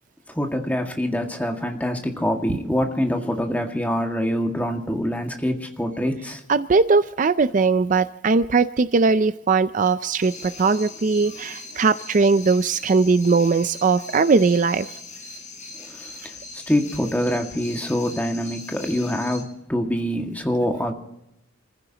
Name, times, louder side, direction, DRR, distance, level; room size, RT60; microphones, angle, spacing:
voice 1, 0.3-6.4 15.7-20.9, equal, 10° left, 3 dB, 1.9 m, -25 dB
voice 2, 6.5-14.9, right 4 dB, 40° right, 13 dB, 0.4 m, -19 dB
sound 1, 10.2-19.4, left 4 dB, 40° left, 4.3 m, -40 dB
28.5 x 15.0 x 2.9 m, 0.84 s
head